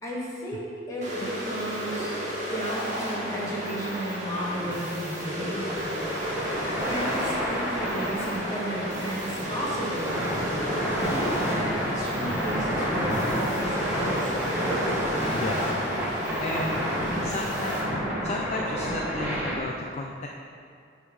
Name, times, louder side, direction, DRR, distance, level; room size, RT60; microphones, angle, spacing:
voice 1, 0.0-2.1 2.5-6.0 6.8-10.5 11.0-14.8, right 1 dB, 20° left, -6 dB, 1.9 m, -33 dB
sound 1, 1.0-17.8, equal, 40° right, 1.8 m, -33 dB
sound 2, 1.2-19.6, equal, 10° right, 1.2 m, -30 dB
voice 2, 2.2-2.5 15.3-15.6 16.4-16.8 17.1-17.8 18.2-20.3, left 2 dB, 40° left, -1 dB, 0.5 m, -33 dB
9.6 x 3.6 x 6.1 m, 2.4 s
head